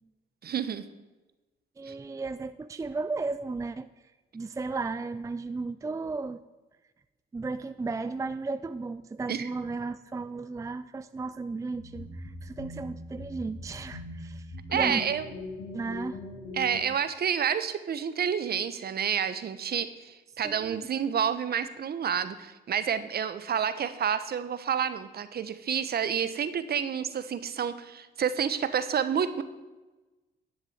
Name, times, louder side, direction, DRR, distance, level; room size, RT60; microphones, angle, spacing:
voice 1, 0.4-0.8 1.8-1.9 9.3-9.5 14.7-15.2 16.5-29.4, right 8 dB, 50° right, 13 dB, 1.0 m, -29 dB
voice 2, 1.8-3.9 4.3-6.4 7.3-15.0 15.7-16.2 20.4-20.9, right 3 dB, 15° right, 12 dB, 0.4 m, -34 dB
sound 1, 11.8-16.8, left 2 dB, 85° left, 5.2 m, -41 dB
11.0 x 7.2 x 8.0 m, 1.1 s
cardioid pair, 90°, 20 cm